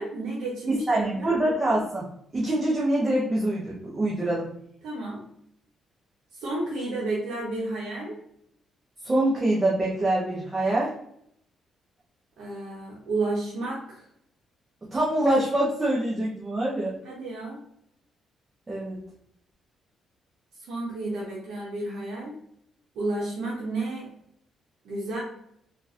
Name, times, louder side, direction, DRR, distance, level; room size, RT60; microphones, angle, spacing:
voice 1, 0.0-1.4 4.8-5.2 6.3-8.2 12.4-14.0 17.0-17.6 20.7-22.3 22.9-24.1 24.8-25.2, right 2 dB, 80° right, -5 dB, 0.9 m, -31 dB
voice 2, 0.7-2.1 2.3-4.5 9.0-10.9 14.9-16.9 18.7-19.0, right 1 dB, 25° right, -5 dB, 1.0 m, -25 dB
3.7 x 2.5 x 2.7 m, 0.70 s
cardioid pair, 90°, 0 cm